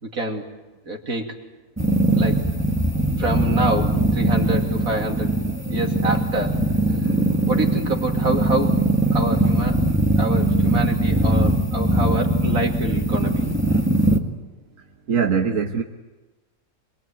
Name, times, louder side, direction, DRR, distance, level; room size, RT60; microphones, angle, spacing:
voice 1, 0.0-0.4 0.8-1.4 2.1-2.4 3.2-5.3 5.7-6.7 7.5-9.8 10.2-13.4, right 2 dB, 85° right, 2 dB, 3.2 m, -26 dB
sound 1, 1.8-14.2, right 1 dB, 10° right, 1.6 m, -21 dB
voice 2, 15.1-15.8, right 6 dB, 70° right, 3 dB, 1.6 m, -21 dB
26.0 x 22.5 x 9.1 m, 1.2 s
omnidirectional pair, 1.4 m